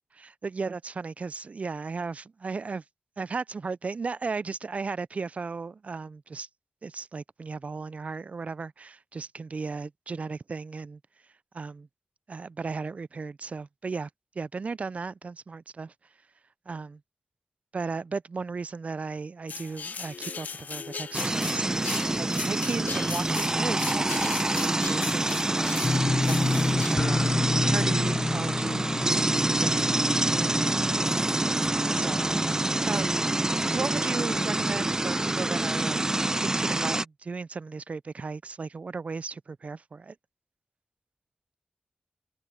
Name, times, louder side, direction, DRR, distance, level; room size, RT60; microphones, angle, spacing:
voice 1, 0.1-2.8 3.2-6.5 6.8-11.0 11.5-11.9 12.3-14.1 14.4-15.9 16.7-17.0 17.7-21.9 22.2-25.8 26.2-27.2 27.7-28.8 29.3-29.8 30.2-31.3 31.9-32.2 32.8-33.2 33.7-36.0 36.4-40.2, right 4 dB, 55° right, 0.3 m, -35 dB
sound 1, 19.5-27.0, left 5 dB, 85° left, 0.7 m, -38 dB
sound 2, 21.1-37.0, right 2 dB, 20° right, 0.7 m, -26 dB
sound 3, 25.8-32.7 33.0-33.5 33.9-34.0, left 3 dB, 40° left, 0.8 m, -30 dB
open air
wide cardioid pair, 80°, 3 cm